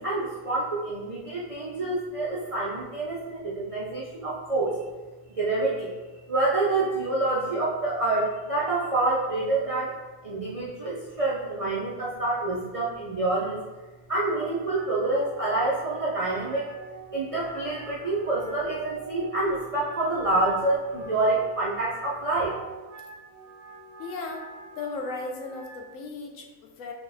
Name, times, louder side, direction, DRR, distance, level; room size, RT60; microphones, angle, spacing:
voice 1, 0.0-4.8 5.3-5.9 6.3-9.9 10.2-13.6 14.1-16.6 17.1-22.6, right 2 dB, 60° right, -6 dB, 0.3 m, -27 dB
Wind instrument woodwind instrument, 14.2-25.9, right 4 dB, 85° right, 1.0 m, -46 dB
voice 2, 24.0-24.5 24.8-26.9, left 3 dB, 75° left, 2 dB, 1.0 m, -36 dB
4.9 x 3.0 x 2.6 m, 1.2 s
omnidirectional pair, 1.4 m